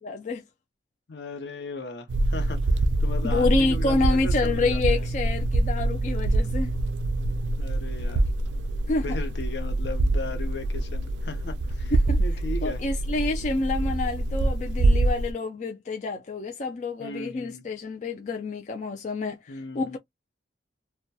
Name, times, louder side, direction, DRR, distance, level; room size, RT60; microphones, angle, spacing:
voice 1, 0.0-0.4 3.2-6.7 8.9-9.0 12.1-12.2 12.6-20.0, left 3 dB, 40° left, 0.3 m, -28 dB
voice 2, 1.1-5.1 7.6-8.2 9.0-11.9 12.2-12.9 17.0-17.6 19.5-20.0, left 3 dB, 75° left, 0.7 m, -37 dB
sound 1, 2.1-15.3, right 2 dB, 90° right, 0.4 m, -25 dB
2.7 x 2.1 x 2.2 m
head